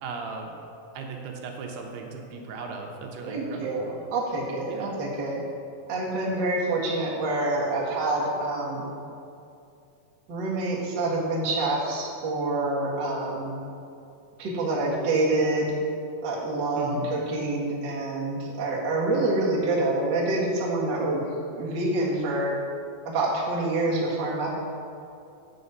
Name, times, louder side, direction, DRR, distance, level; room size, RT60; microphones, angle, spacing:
voice 1, 0.0-0.6 0.9-3.9 4.7-4.9 16.8-17.1, right 4 dB, 75° right, 2 dB, 2.8 m, -36 dB
voice 2, 3.3-5.4 5.9-8.8 10.3-13.6 14.4-15.7 16.2-21.3 21.6-22.6 23.0-24.5, right 2 dB, 60° right, -5 dB, 1.2 m, -27 dB
8.5 x 6.5 x 6.7 m, 2.6 s
omnidirectional pair, 4.9 m